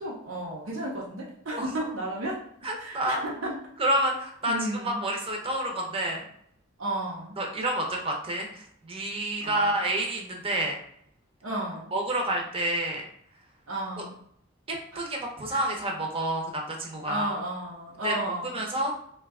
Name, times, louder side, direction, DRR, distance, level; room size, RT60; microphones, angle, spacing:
voice 1, 0.0-2.4 2.8-3.6 4.5-5.0 6.8-7.4 9.4-9.7 11.4-11.9 13.7-14.1 14.9-15.0 15.5-15.7 17.1-18.6, right 1 dB, 70° right, -4 dB, 0.7 m, -33 dB
voice 2, 1.6-1.9 2.6-3.2 3.8-6.2 7.4-10.7 11.9-13.0 14.7-17.4 18.0-18.9, right 1 dB, 25° right, 1 dB, 0.6 m, -29 dB
2.7 x 2.2 x 3.5 m, 0.68 s
head